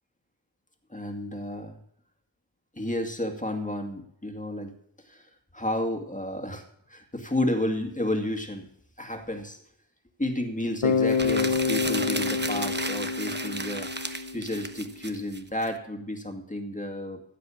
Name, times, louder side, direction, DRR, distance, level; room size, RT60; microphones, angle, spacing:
voice 1, 0.9-1.8 2.7-8.7 9.0-9.6 10.2-13.9 14.3-17.2, left 1 dB, 15° left, 4 dB, 2.2 m, -32 dB
Bass guitar, 10.8-14.8, left 5 dB, 80° left, 1.2 m, -27 dB
sound 1, 11.0-15.7, right 2 dB, 20° right, 1.0 m, -34 dB
15.5 x 9.0 x 7.3 m, 0.68 s
wide cardioid pair, 90°, 47 cm